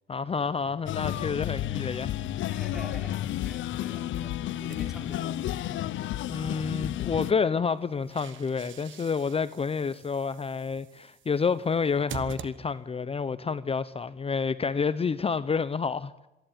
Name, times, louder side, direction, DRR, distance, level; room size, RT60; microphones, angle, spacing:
voice 1, 0.1-2.1 6.3-16.1, left 5 dB, 30° left, 0.7 m, -29 dB
voice 2, 0.7-1.4 2.5-5.5, left 1 dB, ahead, 3.5 m, -46 dB
sound 1, 0.9-7.3, left 13 dB, 75° left, 0.7 m, -32 dB
sound 2, 4.7-5.8 7.7-13.1, right 9 dB, 75° right, 1.3 m, -46 dB
26.0 x 11.5 x 9.0 m
cardioid pair, 90°, 20 cm